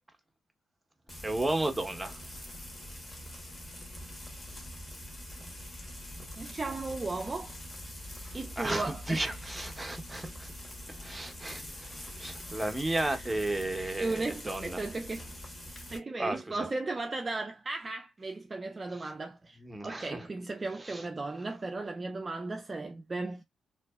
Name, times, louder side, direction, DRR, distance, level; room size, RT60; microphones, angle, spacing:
Frying (food), 1.1-16.0, left 1 dB, 30° left, 1.2 m, -44 dB
voice 1, 1.2-2.2 8.6-10.5 11.0-14.8 16.2-16.7 18.9-19.1 19.6-20.2 20.8-21.0, right 2 dB, 15° right, 0.8 m, -34 dB
voice 2, 6.4-7.5 8.2-9.4 12.9-13.1 13.8-15.3 15.9-19.6 19.8-23.4, right 3 dB, 35° right, 0.4 m, -36 dB
2.7 x 2.0 x 2.3 m
supercardioid pair, 60°, 0 cm